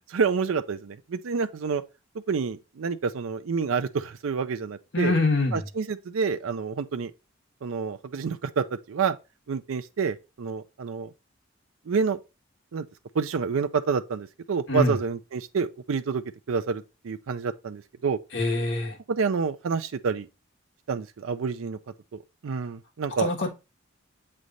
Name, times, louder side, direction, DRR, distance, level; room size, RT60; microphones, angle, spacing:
voice 1, 0.1-1.8 2.3-5.1 5.5-7.1 7.6-9.2 9.5-11.1 11.9-12.2 12.7-12.9 13.1-18.2 19.1-20.3 20.9-21.8 22.1-23.3, right 5 dB, 80° right, 0.4 m, -28 dB
voice 2, 4.9-5.6 14.7-15.0 18.3-19.0 23.2-23.5, left 2 dB, 60° left, 1.4 m, -24 dB
7.4 x 3.3 x 3.9 m
head